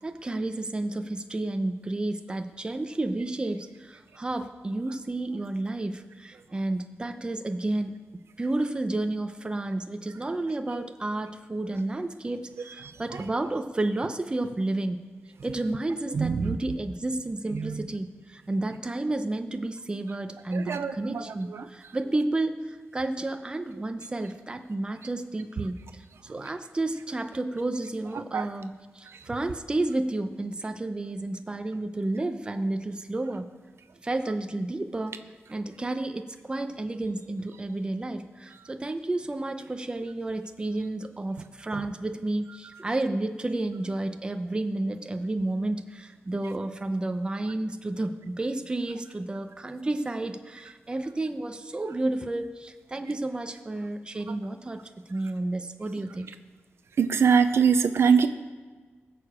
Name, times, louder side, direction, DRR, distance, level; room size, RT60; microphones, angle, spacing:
voice 1, 0.0-7.9 8.4-15.0 15.4-33.5 34.0-35.2 35.5-56.3, right 2 dB, 20° right, 6 dB, 0.8 m, -31 dB
voice 2, 12.7-13.3 13.5-13.6 16.1-16.6 17.5-17.9 20.5-21.7 26.3-26.5 28.1-28.5 29.0-29.3 38.5-38.7 41.7-41.9 53.0-53.1 54.3-54.4 57.0-58.3, right 6 dB, 80° right, 9 dB, 0.6 m, -25 dB
20.5 x 6.9 x 5.0 m, 1.4 s
wide cardioid pair, 135°, 4 cm